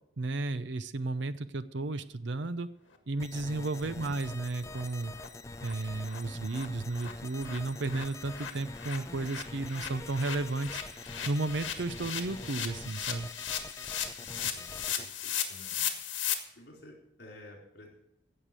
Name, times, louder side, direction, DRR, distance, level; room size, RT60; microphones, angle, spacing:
voice 1, 0.2-2.7 3.1-5.1 5.6-10.8 11.2-13.3, right 2 dB, 70° right, 13 dB, 0.6 m, -33 dB
sound 1, 3.2-15.1, left 2 dB, 15° left, 0.4 m, -45 dB
sound 2, 3.4-3.5 3.8-3.9 4.2-4.4 4.7-4.8 5.1-5.3 5.6-5.7 6.1-6.2 6.4-16.3, left 9 dB, 75° left, 1.7 m, -37 dB
voice 2, 14.2-16.0 16.5-18.0, left 1 dB, 55° left, -1 dB, 4.0 m, -53 dB
16.5 x 6.6 x 6.7 m, 0.80 s
head